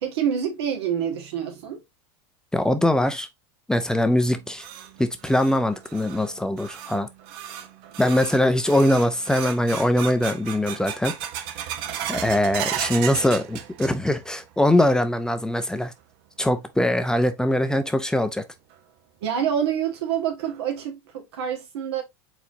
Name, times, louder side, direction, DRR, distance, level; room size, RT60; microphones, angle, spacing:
voice 1, 0.0-1.8 7.9-8.0 11.9-12.0 19.2-22.0, right 8 dB, 90° right, 1.6 m, -27 dB
voice 2, 2.5-3.3 3.7-4.7 5.0-7.1 8.0-11.1 12.1-15.9 16.4-18.4, left 1 dB, 5° left, 0.5 m, -22 dB
sound 1, 4.2-14.3 14.6-15.2 15.6-15.7 16.4-16.5 18.1-18.2 18.7-18.8 19.3-19.4 19.8-19.9 20.5-20.8, right 10 dB, 65° right, 0.8 m, -35 dB
4.6 x 3.9 x 2.6 m
supercardioid pair, 125°, 13 cm